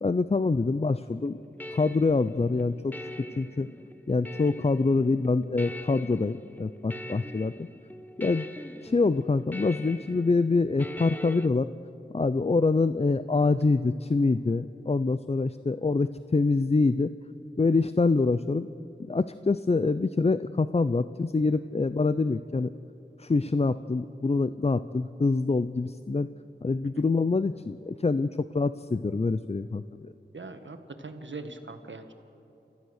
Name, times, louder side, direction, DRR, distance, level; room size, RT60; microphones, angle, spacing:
voice 1, 0.0-1.4 1.7-2.9 3.4-3.7 4.1-7.7 8.2-8.5 8.8-11.7 12.1-17.1 17.6-18.7 19.1-22.7 23.2-26.3 26.6-30.1, left 3 dB, 35° left, 13 dB, 0.5 m, -25 dB
sound 1, 0.9-11.5, equal, 10° left, 1.1 m, -43 dB
voice 2, 30.3-32.1, right 3 dB, 75° right, 7 dB, 1.6 m, -41 dB
29.5 x 15.0 x 6.5 m, 2.9 s
wide cardioid pair, 45°, 19 cm